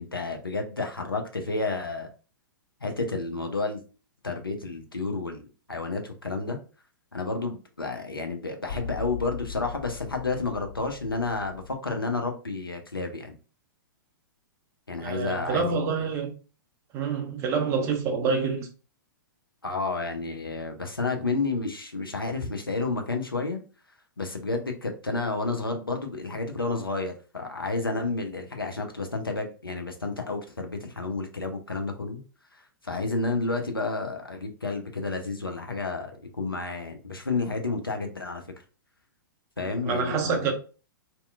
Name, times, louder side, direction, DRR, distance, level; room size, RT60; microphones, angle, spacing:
voice 1, 0.0-2.1 2.8-3.8 4.2-5.4 5.7-6.6 7.1-13.3 14.9-15.8 19.6-23.6 24.2-32.2 32.5-38.4 39.6-40.5, left 3 dB, 85° left, 0.6 m, -31 dB
sound 1, 8.7-11.8, left 7 dB, 50° left, 1.1 m, -39 dB
voice 2, 15.0-16.3 16.9-18.7 39.6-40.5, right 5 dB, 25° right, 0.5 m, -27 dB
2.8 x 2.2 x 2.2 m
figure-of-eight pair, 110°, 12 cm